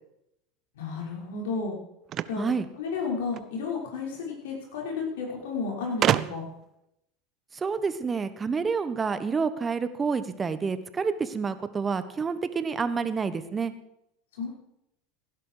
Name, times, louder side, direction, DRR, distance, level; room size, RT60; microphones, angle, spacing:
voice 1, 0.7-1.7 2.3-2.5 2.8-6.5 14.4-14.5, left 4 dB, 75° left, -1 dB, 5.7 m, -32 dB
sound 1, 2.1-3.5 4.6-4.7 4.9-5.0 6.0-6.7, right 11 dB, 45° right, 0.6 m, -28 dB
voice 2, 7.5-13.7, right 5 dB, 25° right, 12 dB, 1.3 m, -28 dB
17.0 x 11.0 x 4.9 m, 0.81 s
hypercardioid pair, 90°, 0 cm